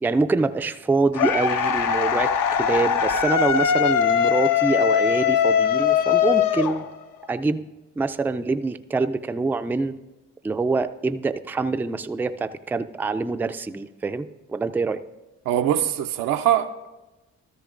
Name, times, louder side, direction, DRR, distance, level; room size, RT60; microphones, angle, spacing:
voice 1, 0.0-2.3 2.6-6.9 7.3-7.7 8.0-9.9 10.4-15.0, right 3 dB, 5° right, 0.3 m, -25 dB
sound 1, 1.1-7.2, left 8 dB, 70° left, 0.7 m, -21 dB
voice 2, 15.5-16.9, right 11 dB, 85° right, 0.6 m, -22 dB
13.5 x 13.0 x 2.5 m
supercardioid pair, 60°, 33 cm